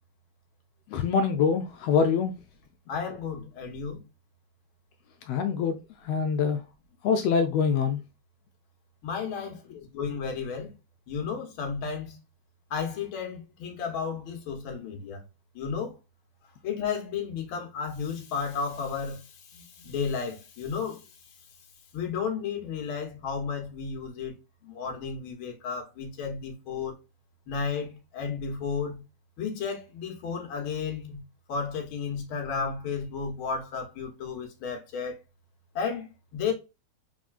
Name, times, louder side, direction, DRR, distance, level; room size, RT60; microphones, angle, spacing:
voice 1, 0.9-2.3 5.3-5.8 6.0-6.6 7.0-8.0, left 6 dB, 80° left, 1.4 m, -24 dB
voice 2, 2.9-4.0 9.0-10.7 11.1-12.2 12.7-15.2 15.5-16.0 16.6-21.0 21.9-24.4 24.6-26.9 27.5-29.0 29.4-31.2 31.5-35.2 35.7-36.5, left 6 dB, 55° left, 1.6 m, -33 dB
4.2 x 3.7 x 2.4 m
omnidirectional pair, 3.4 m